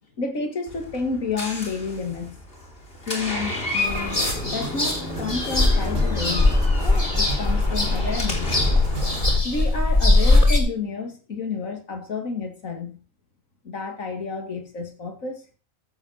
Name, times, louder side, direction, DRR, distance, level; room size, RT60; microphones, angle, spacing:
voice 1, 0.2-2.4 3.1-6.5 7.1-8.6 9.4-13.0 13.6-15.5, left 4 dB, 80° left, 2.5 m, -30 dB
Door, 0.7-9.4, left 2 dB, 45° left, 3.4 m, -31 dB
sound 1, 3.8-10.6, left 2 dB, 25° left, 2.8 m, -21 dB
sound 2, 4.0-4.1 4.3-6.7 7.0-9.2, right 6 dB, 85° right, 2.0 m, -37 dB
14.0 x 7.7 x 6.4 m
omnidirectional pair, 1.4 m